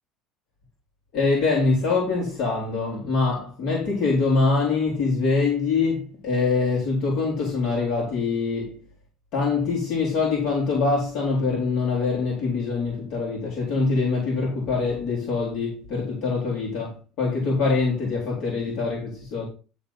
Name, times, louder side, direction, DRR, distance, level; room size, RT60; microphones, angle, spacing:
voice 1, 1.1-8.8 9.3-19.4, left 4 dB, 60° left, 3.7 m, -24 dB
11.0 x 4.0 x 5.5 m
supercardioid pair, 110°, 0 cm